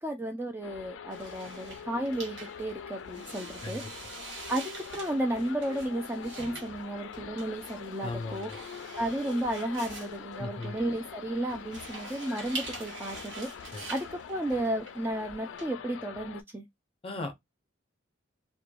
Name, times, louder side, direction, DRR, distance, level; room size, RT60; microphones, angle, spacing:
voice 1, 0.0-3.8 4.5-8.5 9.0-13.5 13.9-16.6, right 1 dB, 10° right, 0.4 m, -33 dB
sound 1, 0.6-16.4, left 7 dB, 70° left, 0.3 m, -44 dB
sound 2, 1.1-15.6, right 3 dB, 65° right, 1.2 m, -45 dB
voice 2, 8.0-8.6 10.4-10.8 13.7-13.8 17.0-17.3, left 2 dB, 30° left, 0.7 m, -37 dB
3.1 x 2.2 x 2.4 m
head